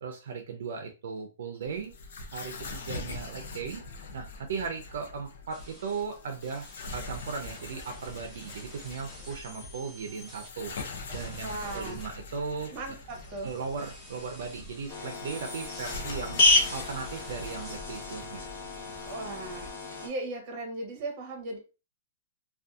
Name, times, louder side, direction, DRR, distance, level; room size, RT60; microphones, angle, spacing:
voice 1, 0.0-1.9 2.3-3.8 4.1-10.7 11.1-12.7 13.4-16.4 16.7-18.5, right 5 dB, 65° right, 4 dB, 0.4 m, -37 dB
sound 1, 1.6-19.7, left 3 dB, 65° left, 0.6 m, -43 dB
sound 2, 5.5-10.5 11.1-17.8, equal, 5° left, 0.7 m, -49 dB
voice 2, 11.4-12.0 12.7-13.5 19.0-21.6, right 2 dB, 30° right, 3 dB, 0.8 m, -37 dB
sound 3, 14.9-20.1, left 2 dB, 45° left, 1.0 m, -30 dB
2.6 x 2.3 x 2.3 m, 0.32 s
hypercardioid pair, 165°, 0 cm